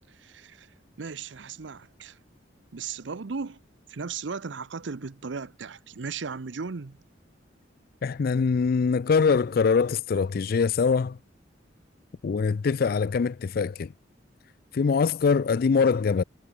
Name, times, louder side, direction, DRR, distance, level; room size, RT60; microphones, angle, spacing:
voice 1, 0.1-2.2 2.7-3.6 3.9-7.0, right 5 dB, 70° right, 0.7 m, -36 dB
voice 2, 8.0-11.2 12.2-13.9 14.7-16.2, left 5 dB, 50° left, 0.4 m, -23 dB
head